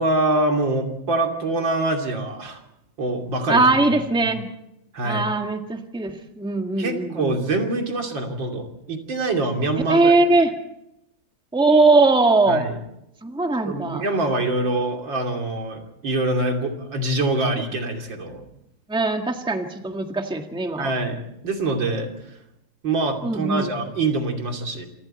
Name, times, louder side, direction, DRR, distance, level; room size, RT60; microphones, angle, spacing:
voice 1, 0.0-2.6 3.0-3.7 4.2-4.3 4.9-5.3 6.8-10.1 12.5-12.8 13.7-18.4 20.8-22.1 22.8-24.9, right 2 dB, 80° right, 3 dB, 3.5 m, -24 dB
voice 2, 3.5-4.5 5.0-7.4 9.9-10.5 11.5-12.6 13.2-14.0 18.9-20.9 23.2-23.7, right 3 dB, 5° right, 4 dB, 1.6 m, -20 dB
27.5 x 25.0 x 4.4 m, 0.84 s
omnidirectional pair, 2.0 m